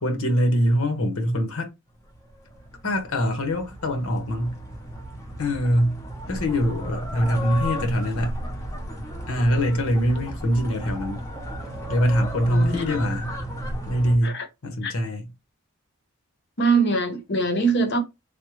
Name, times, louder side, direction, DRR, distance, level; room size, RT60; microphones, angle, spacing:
voice 1, 0.0-1.7 2.8-4.6 5.4-6.0 6.3-8.3 9.3-11.2 11.9-13.3 13.9-14.4 14.6-15.2, equal, 75° left, 0.9 m, -23 dB
sound 1, 2.1-14.2, equal, 15° left, 0.6 m, -34 dB
voice 2, 12.5-13.0 14.2-14.5 14.8-14.9 16.6-18.0, right 3 dB, 50° left, 0.8 m, -23 dB
3.4 x 2.2 x 3.0 m
head